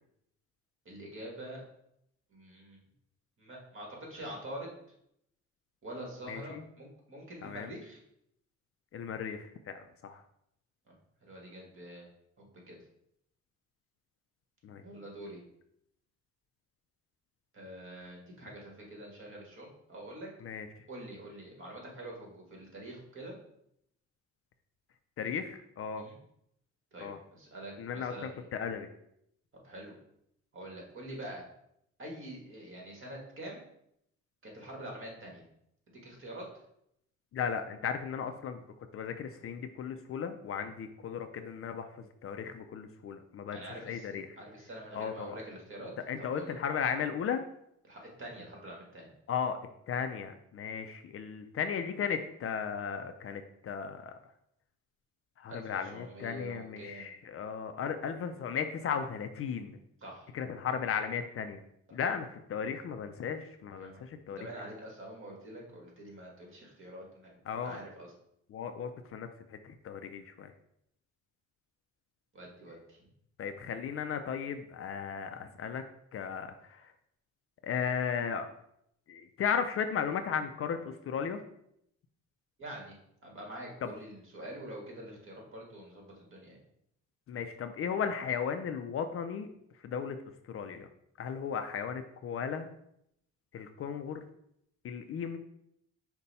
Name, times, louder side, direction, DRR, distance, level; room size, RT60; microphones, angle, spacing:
voice 1, 0.8-1.6 2.3-2.8 3.4-4.7 5.8-8.0 10.9-11.0 11.2-12.1 12.4-12.8 14.8-15.4 17.5-20.3 20.9-23.3 26.0-26.1 26.9-28.5 29.6-29.9 30.5-31.4 32.0-33.6 34.4-35.4 35.9-36.5 43.5-46.5 47.8-49.1 55.5-57.1 60.0-60.3 61.9-62.0 63.8-64.1 64.4-68.1 72.3-73.1 82.6-83.0 83.2-86.6, right 1 dB, 45° right, -1 dB, 1.6 m, -45 dB
voice 2, 6.3-6.6 7.4-7.7 8.9-10.2 14.6-14.8 20.4-20.9 25.2-26.0 27.0-27.2 27.8-28.9 37.3-38.6 38.9-43.6 43.9-44.3 44.9-45.4 46.1-47.4 49.3-49.6 49.9-54.2 55.4-59.8 60.3-61.6 61.9-64.5 67.5-67.8 68.5-70.5 73.4-75.8 76.1-76.9 77.6-78.5 79.1-81.4 83.8-83.9 87.3-89.5 89.8-90.2 90.4-90.9 91.2-92.7 93.5-94.2 94.8-95.4, left 7 dB, 50° left, 8 dB, 0.4 m, -35 dB
5.3 x 2.2 x 4.0 m, 0.75 s
cardioid pair, 90°, 30 cm